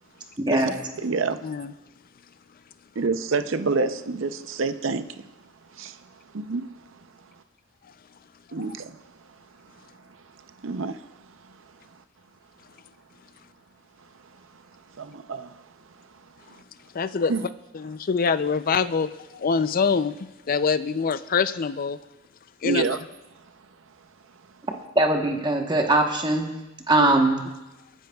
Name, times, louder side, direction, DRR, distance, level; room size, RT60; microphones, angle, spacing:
voice 1, 0.5-1.5 3.0-5.3 5.7-6.1 6.3-6.7 8.5-9.0 10.6-11.5 15.0-15.6 16.5-16.6 17.3-17.5 22.6-23.0, right 4 dB, 65° right, 10 dB, 0.6 m, -28 dB
voice 2, 16.9-17.3 17.7-22.0 22.6-22.8 27.0-27.1, left 5 dB, 45° left, 14 dB, 0.4 m, -25 dB
voice 3, 24.9-26.6 26.9-27.4, right 2 dB, 20° right, 2 dB, 1.1 m, -21 dB
30.0 x 10.0 x 2.3 m, 1.0 s
head